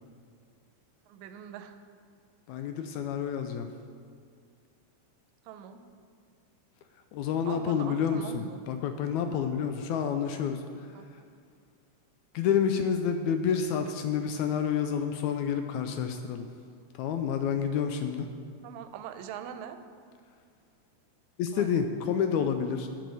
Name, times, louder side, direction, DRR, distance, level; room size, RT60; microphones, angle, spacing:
voice 1, 1.1-1.7 5.5-5.8 7.5-8.6 9.3-9.4 10.9-11.1 18.6-19.8 21.5-21.7, right 9 dB, 80° right, 8 dB, 1.9 m, -42 dB
voice 2, 2.5-3.7 7.1-11.2 12.3-16.5 16.9-18.3 21.4-22.9, left 7 dB, 80° left, 7 dB, 1.9 m, -29 dB
11.5 x 6.1 x 5.5 m, 2.2 s
omnidirectional pair, 3.4 m